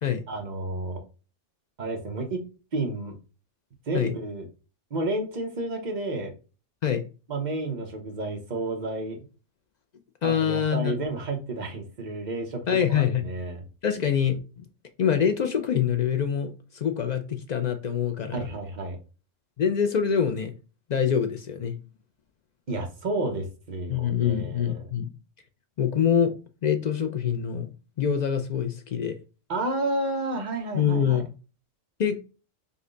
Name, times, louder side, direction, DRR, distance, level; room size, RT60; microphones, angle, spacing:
voice 1, 0.3-1.0 1.8-2.5 2.7-3.1 3.9-4.5 4.9-6.3 7.3-9.2 10.2-12.6 12.9-13.6 18.3-19.0 22.7-24.9 29.5-31.2, right 2 dB, 40° right, 2 dB, 1.0 m, -31 dB
voice 2, 10.2-11.0 12.7-13.3 13.8-14.4 15.0-18.5 19.6-20.5 20.9-21.8 23.9-25.1 25.8-26.3 26.6-27.7 28.0-29.2 30.7-31.3 32.0-32.2, left 8 dB, 75° left, 7 dB, 0.4 m, -25 dB
5.3 x 2.2 x 3.8 m, 0.33 s
omnidirectional pair, 1.3 m